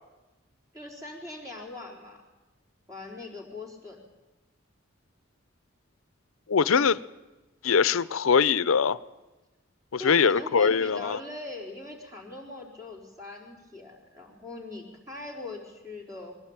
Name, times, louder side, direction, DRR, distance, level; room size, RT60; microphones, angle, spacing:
voice 1, 0.7-2.2 2.9-4.0 6.6-6.9 10.0-16.4, left 2 dB, 15° right, 4.4 m, -41 dB
voice 2, 6.5-7.0 7.6-9.0 9.9-11.2, left 6 dB, 90° left, 0.6 m, -22 dB
21.5 x 16.0 x 8.9 m
head